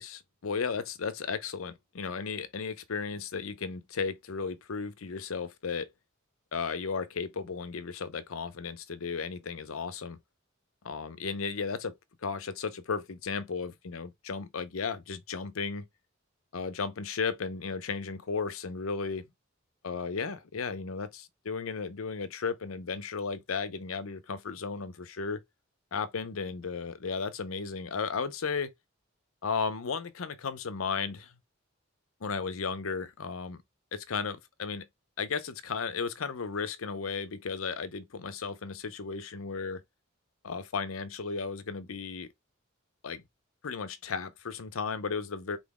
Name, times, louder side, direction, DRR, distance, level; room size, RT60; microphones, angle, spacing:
voice 1, 0.0-5.9 6.5-10.2 10.8-11.9 12.2-15.9 16.5-19.3 19.8-25.4 25.9-28.7 29.4-31.3 32.2-33.6 33.9-34.9 35.2-39.8 40.4-42.3 43.0-43.2 43.6-45.6, left 5 dB, 90° left, 0.7 m, -34 dB
3.9 x 3.8 x 3.5 m
head